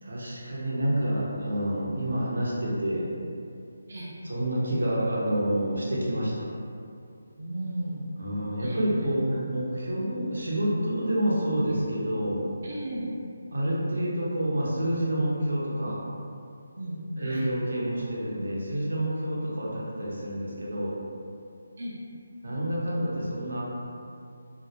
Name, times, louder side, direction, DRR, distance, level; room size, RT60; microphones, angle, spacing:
voice 1, 0.0-3.1 4.2-6.5 8.2-12.4 13.5-16.0 17.2-21.0 22.4-23.6, right 1 dB, 85° right, -6 dB, 0.7 m, -28 dB
voice 2, 7.4-8.0 8.6-8.8 12.6-13.0 16.7-17.5 19.4-19.5 21.8-21.9, right 1 dB, 45° right, -7 dB, 0.4 m, -35 dB
2.4 x 2.0 x 2.8 m, 2.5 s
hypercardioid pair, 180°, 0 cm